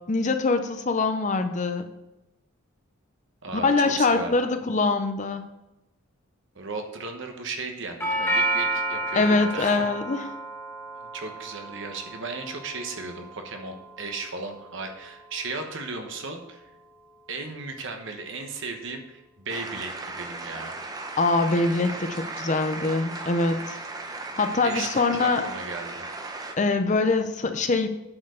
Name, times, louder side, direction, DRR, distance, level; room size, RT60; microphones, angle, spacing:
voice 1, 0.1-1.8 3.5-5.5 9.1-10.3 21.2-23.8 24.4-25.5 26.6-27.9, left 3 dB, 35° left, 8 dB, 0.5 m, -23 dB
voice 2, 3.4-4.5 6.5-9.9 10.9-16.7 17.3-20.8 24.6-26.1, right 3 dB, 55° right, 4 dB, 1.1 m, -36 dB
Doorbell, 8.0-16.1, right 1 dB, 10° left, 1.0 m, -32 dB
sound 1, 19.5-26.5, right 3 dB, 15° right, 0.6 m, -36 dB
8.6 x 4.6 x 6.3 m, 0.94 s
head